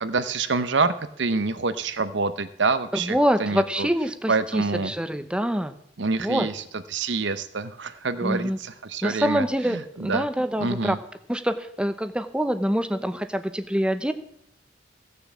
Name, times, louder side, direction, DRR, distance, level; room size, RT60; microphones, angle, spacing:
voice 1, 0.0-3.9 4.3-4.9 6.0-6.6 6.9-10.3 10.6-11.0, right 4 dB, 70° right, 12 dB, 0.9 m, -27 dB
voice 2, 2.9-5.8 6.2-6.5 8.2-8.6 9.0-11.0 11.3-14.1, equal, 5° right, 10 dB, 0.8 m, -25 dB
16.0 x 6.9 x 7.3 m, 0.72 s
head